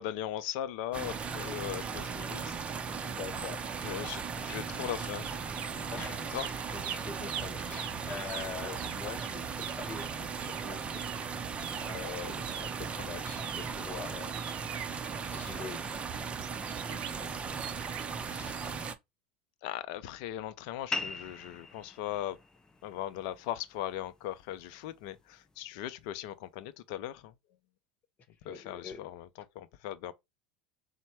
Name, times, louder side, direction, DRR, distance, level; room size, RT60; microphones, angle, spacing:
voice 1, 0.0-2.6 3.8-5.4 6.3-6.5 18.3-18.9 19.6-22.4 22.8-27.3 28.4-29.3 29.5-30.1, left 12 dB, 65° left, 0.5 m, -39 dB
sound 1, 0.9-18.9, right 5 dB, 25° right, 0.6 m, -37 dB
voice 2, 3.0-3.8 5.9-11.0 11.8-14.4 14.8-16.0 16.8-17.3 28.4-29.1, left 6 dB, 35° left, 1.1 m, -44 dB
sound 2, 5.2-6.1 6.3-12.1 12.4-15.6 16.4-18.2 18.5-18.7, right 10 dB, 60° right, 0.7 m, -44 dB
sound 3, 20.9-25.9, left 3 dB, 15° left, 0.6 m, -43 dB
4.2 x 2.1 x 4.5 m
hypercardioid pair, 85°, 5 cm